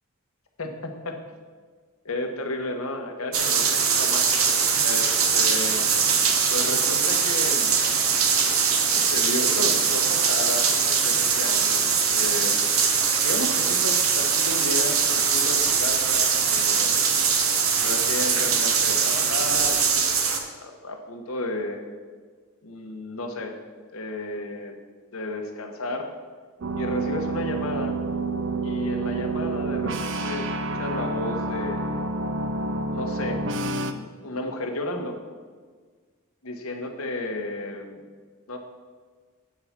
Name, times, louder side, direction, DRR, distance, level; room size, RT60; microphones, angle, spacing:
voice 1, 0.6-1.1 2.0-5.9 6.5-7.7 8.9-12.6 13.2-16.9 17.8-20.1 20.6-21.8 22.6-23.5 23.9-24.7 25.1-26.1 26.8-28.0 28.6-32.0 32.9-33.4 33.7-35.2 36.4-38.0 38.5-38.6, left 2 dB, 85° left, 4 dB, 1.3 m, -33 dB
sound 1, 3.3-20.4, right 6 dB, 80° right, 1.1 m, -22 dB
sound 2, 26.6-33.9, right 2 dB, 60° right, 0.6 m, -28 dB
8.8 x 4.8 x 7.3 m, 1.5 s
head